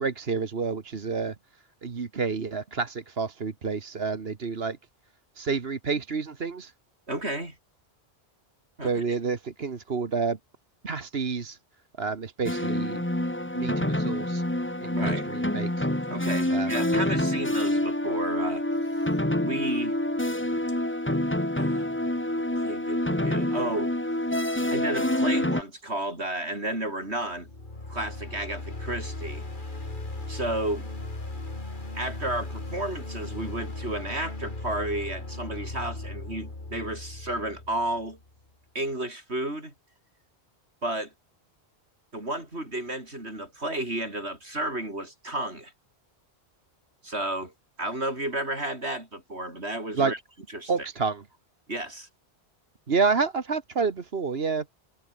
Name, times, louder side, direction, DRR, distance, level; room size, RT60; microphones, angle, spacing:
voice 1, 0.0-1.3 1.8-4.8 5.4-6.7 8.8-10.4 10.8-11.6 12.0-13.0 13.5-14.4 14.8-15.9 16.5-16.7 49.9-50.1 50.7-51.2 52.9-54.6, right 5 dB, 70° right, 1.7 m, -29 dB
voice 2, 7.1-7.6 8.8-9.2 14.9-15.3 16.1-18.6 19.4-20.0 21.6-22.0 22.6-23.9 24.7-27.5 27.9-29.5 30.3-30.9 31.9-38.2 38.7-39.7 40.8-41.1 42.1-45.7 47.0-47.5 47.8-50.2 50.5-50.9 51.7-52.1, right 1 dB, 85° right, 7.6 m, -32 dB
sound 1, 12.4-25.6, left 1 dB, 10° left, 1.9 m, -27 dB
sound 2, 27.3-38.3, left 2 dB, 50° left, 3.5 m, -37 dB
omnidirectional pair, 1.1 m